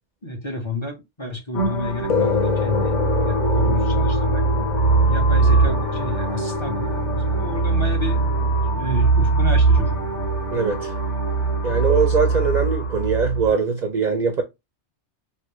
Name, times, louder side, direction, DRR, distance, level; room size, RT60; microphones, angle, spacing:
voice 1, 0.2-4.4 5.0-8.2 8.7-10.0, left 1 dB, 25° left, 0.9 m, -31 dB
sound 1, 1.5-13.5, right 4 dB, 90° left, 1.9 m, -21 dB
sound 2, 2.1-10.8, left 6 dB, 50° left, 0.5 m, -27 dB
voice 2, 10.5-10.9 11.6-14.4, right 5 dB, 50° right, 0.5 m, -21 dB
3.3 x 2.7 x 3.0 m
omnidirectional pair, 1.1 m